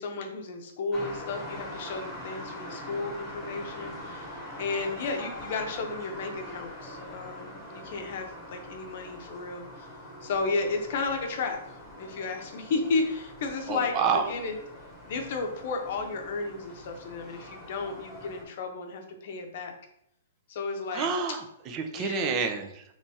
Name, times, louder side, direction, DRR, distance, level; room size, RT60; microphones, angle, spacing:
voice 1, 0.0-9.9 10.2-14.5 15.1-19.8 20.5-21.4 21.9-22.4, left 3 dB, 55° left, 4 dB, 0.7 m, -33 dB
sound 1, 0.9-18.4, left 1 dB, 15° left, 1.2 m, -43 dB
voice 2, 13.7-14.3 20.9-22.8, right 6 dB, 30° right, 6 dB, 0.5 m, -29 dB
3.3 x 3.1 x 2.7 m, 0.77 s
hypercardioid pair, 140°, 0 cm